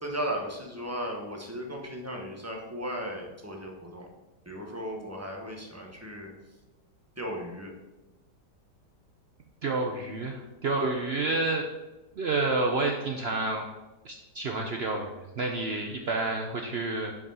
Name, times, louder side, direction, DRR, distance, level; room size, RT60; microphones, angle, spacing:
voice 1, 0.0-4.1 4.5-6.3 7.2-7.7, equal, 15° right, 1 dB, 0.5 m, -36 dB
voice 2, 9.6-11.7 12.2-13.7 14.0-17.1, right 3 dB, 80° right, 2 dB, 0.5 m, -29 dB
5.4 x 4.8 x 5.5 m, 1.1 s
omnidirectional pair, 1.8 m